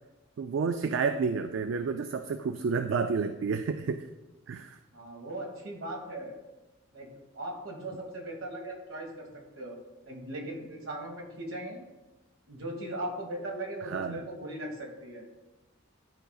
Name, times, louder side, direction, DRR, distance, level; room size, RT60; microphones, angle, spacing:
voice 1, 0.4-4.1 4.5-4.8 13.8-14.3, right 5 dB, 70° right, 8 dB, 0.3 m, -30 dB
voice 2, 4.9-6.4 6.9-7.1 7.3-9.3 9.5-9.7 10.0-11.8 12.5-15.3, right 1 dB, 85° right, 1 dB, 1.6 m, -38 dB
11.5 x 5.0 x 2.4 m, 1.1 s
head